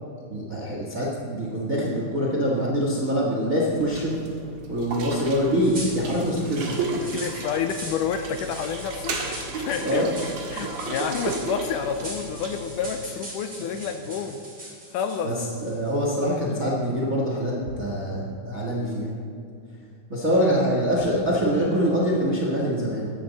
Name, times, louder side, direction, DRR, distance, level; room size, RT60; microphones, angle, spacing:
voice 1, 0.3-4.1 4.7-6.8 9.8-10.1 15.2-15.3 15.6-19.2 20.1-23.1, equal, 45° right, -4 dB, 1.0 m, -24 dB
sound 1, 3.8-13.0, right 3 dB, 90° right, 3.5 m, -34 dB
sound 2, 5.6-15.9, right 1 dB, 20° right, 3.6 m, -41 dB
voice 2, 6.9-10.1 10.5-14.4 14.9-15.3, left 7 dB, 80° left, 7 dB, 2.0 m, -29 dB
15.0 x 10.5 x 4.1 m, 2.5 s
omnidirectional pair, 4.0 m